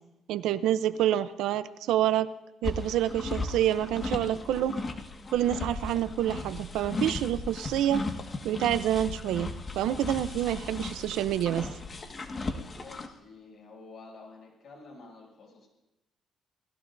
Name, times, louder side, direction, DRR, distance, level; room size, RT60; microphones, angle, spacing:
voice 1, 0.3-2.3 2.6-4.8 5.3-8.0 8.4-9.5 9.8-11.7, right 12 dB, 90° right, 13 dB, 0.6 m, -27 dB
sound 1, 2.6-13.1, left 3 dB, 35° left, 1.7 m, -36 dB
voice 2, 12.7-15.7, left 3 dB, 60° left, 0 dB, 7.4 m, -50 dB
29.0 x 18.5 x 2.7 m, 0.99 s
cardioid pair, 90°, 0 cm